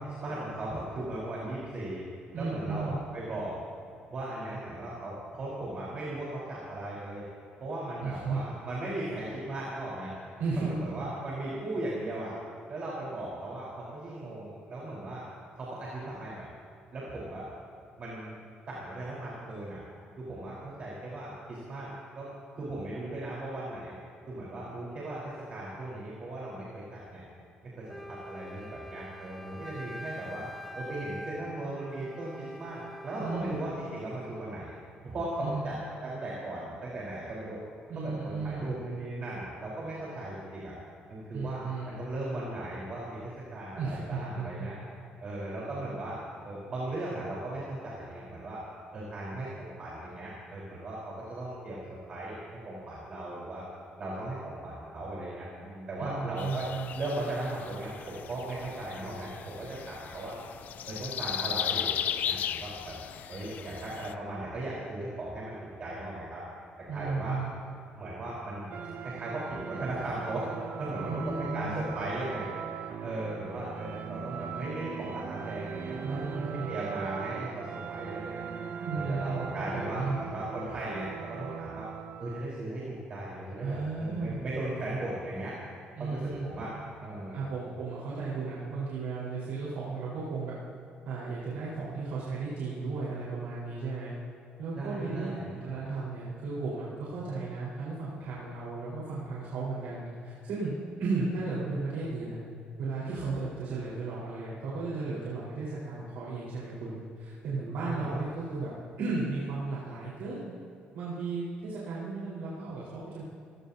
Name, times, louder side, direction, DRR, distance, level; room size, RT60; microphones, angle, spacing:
voice 1, 0.2-2.0 2.3-3.6 4.1-7.2 7.6-10.1 10.5-12.4 12.7-15.3 15.6-16.5 16.9-17.5 18.0-18.4 18.7-19.8 20.2-23.9 24.3-27.2 27.8-30.5 30.7-34.7 35.0-35.8 36.0-37.6 38.0-40.7 41.1-44.8 45.2-48.6 48.9-51.8 52.1-53.6 54.0-56.7 56.9-60.4 60.9-63.0 63.3-66.4 66.9-67.4 67.9-70.5 70.8-72.5 73.0-78.4 78.9-81.9 82.2-85.5 86.0-86.7 87.0-87.4 94.8-95.5 107.9-108.2, right 1 dB, 40° right, -6 dB, 4.2 m, -37 dB
voice 2, 2.3-3.0 8.0-8.4 10.4-10.7 33.2-33.6 35.4-35.7 37.9-38.7 41.3-42.0 43.7-44.7 56.0-56.9 66.9-67.5 71.0-71.8 76.0-76.7 78.8-80.2 83.6-84.4 86.0-86.6 87.3-90.6 91.0-94.1 94.6-102.4 102.8-108.7 109.0-110.5 110.9-113.2, right 3 dB, 80° right, -8 dB, 4.6 m, -34 dB
Wind instrument woodwind instrument, 27.9-33.8, equal, 5° left, 0.6 m, -44 dB
sound 1, 56.4-64.1, left 9 dB, 60° left, 0.6 m, -36 dB
sound 2, 68.7-82.6, right 7 dB, 60° right, 0.9 m, -40 dB
29.0 x 17.5 x 2.8 m, 2.5 s
cardioid pair, 140°, 3 cm